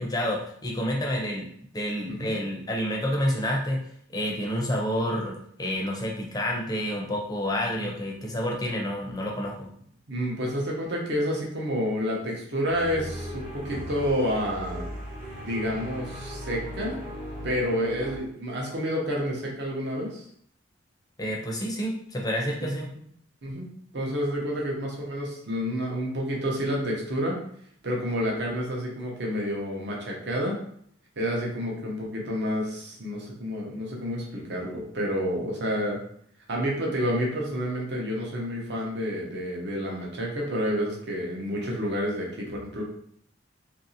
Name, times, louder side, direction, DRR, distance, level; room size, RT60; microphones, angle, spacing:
voice 1, 0.0-1.5 1.7-3.8 4.1-9.7 21.2-22.9, equal, 20° left, -1 dB, 0.5 m, -29 dB
voice 2, 10.1-14.9 15.4-17.0 17.4-20.3 23.4-27.4 27.8-30.6 31.2-36.0 36.5-42.8, equal, 60° right, -2 dB, 0.7 m, -29 dB
sound 1, 12.7-18.2, equal, 40° right, 0.9 m, -37 dB
2.8 x 2.6 x 2.7 m, 0.66 s
head